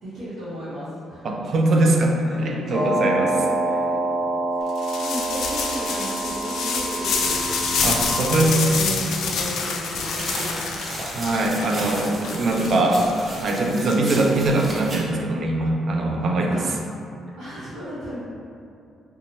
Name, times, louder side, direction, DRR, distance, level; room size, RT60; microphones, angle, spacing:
voice 1, 0.0-1.2 2.2-4.0 4.5-4.6 4.9-7.4 8.0-10.8 16.4-16.8 17.4-18.2, equal, 90° right, -13 dB, 0.9 m, -34 dB
voice 2, 1.2-3.3 7.8-8.7 11.1-16.7, right 2 dB, 55° right, 1 dB, 0.4 m, -22 dB
sound 1, 2.7-8.1, right 2 dB, 25° left, 0.8 m, -26 dB
sound 2, 4.8-14.6, left 5 dB, 75° left, 0.3 m, -27 dB
sound 3, 9.9-15.0, right 1 dB, 35° right, 0.7 m, -35 dB
2.9 x 2.2 x 2.8 m, 2.6 s
cardioid pair, 90°, 0 cm